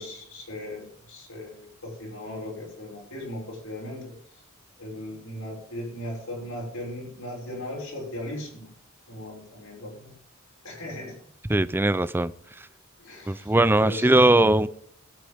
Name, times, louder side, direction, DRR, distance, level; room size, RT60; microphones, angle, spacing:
voice 1, 0.0-4.2 4.8-8.7 9.1-10.1 10.6-11.2 13.0-14.1, left 1 dB, 80° left, 6.3 m, -38 dB
voice 2, 11.5-12.3 13.3-14.7, right 2 dB, 10° right, 0.5 m, -20 dB
22.0 x 8.3 x 3.5 m
head